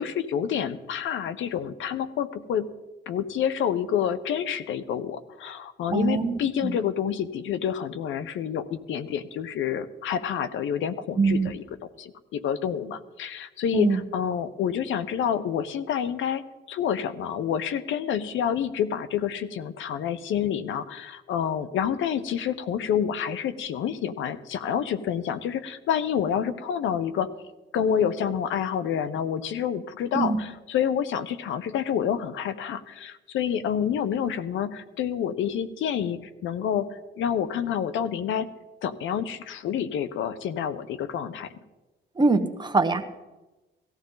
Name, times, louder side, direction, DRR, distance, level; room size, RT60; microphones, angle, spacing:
voice 1, 0.0-2.7 3.1-27.3 27.7-36.9 37.1-38.5 38.8-41.5, left 8 dB, 75° left, 14 dB, 0.9 m, -28 dB
voice 2, 5.9-6.7 11.2-11.5 13.7-14.0 30.1-30.4 42.2-43.0, right 3 dB, 20° right, 7 dB, 1.3 m, -23 dB
18.0 x 14.5 x 4.0 m, 1.1 s
cardioid pair, 90°, 20 cm